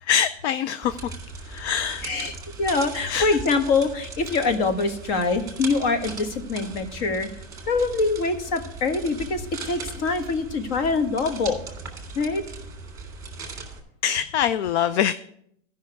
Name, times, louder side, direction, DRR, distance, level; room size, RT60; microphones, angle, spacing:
voice 1, 0.0-1.1 1.4-2.1 3.1-3.4 14.0-15.1, left 9 dB, 65° left, 13 dB, 0.5 m, -24 dB
sound 1, 0.8-13.8, right 3 dB, 10° right, 1.9 m, -39 dB
voice 2, 2.0-7.3 7.7-11.6 12.1-12.4, left 3 dB, 45° left, 7 dB, 1.4 m, -24 dB
14.0 x 5.7 x 4.7 m, 0.70 s
supercardioid pair, 145°, 37 cm